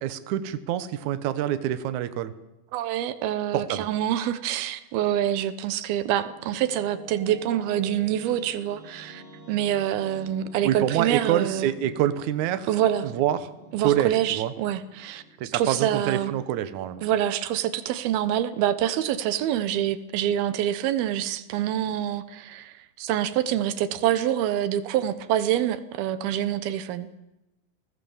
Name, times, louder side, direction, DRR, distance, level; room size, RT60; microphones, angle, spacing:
voice 1, 0.0-2.3 3.5-3.9 10.6-12.7 13.0-13.5 13.8-14.5 15.4-17.0, right 11 dB, 65° right, 12 dB, 2.2 m, -26 dB
voice 2, 2.7-11.7 12.7-13.1 13.7-16.3 17.0-27.1, right 11 dB, 90° right, 13 dB, 3.0 m, -26 dB
sound 1, 6.1-16.7, right 1 dB, 15° left, 6.6 m, -48 dB
29.5 x 18.0 x 7.3 m, 0.94 s
omnidirectional pair, 4.2 m